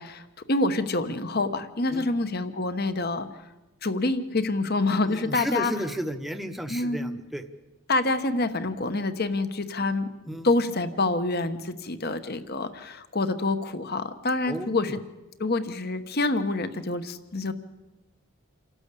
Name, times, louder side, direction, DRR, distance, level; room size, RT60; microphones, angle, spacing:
voice 1, 0.0-3.4 3.8-5.7 6.7-7.2 7.9-10.1 10.4-15.0 15.4-17.5, left 2 dB, 45° left, 10 dB, 1.1 m, -27 dB
voice 2, 5.0-7.4 10.3-10.5 14.5-14.8, equal, ahead, 7 dB, 1.0 m, -33 dB
28.0 x 12.5 x 8.4 m, 1.1 s
head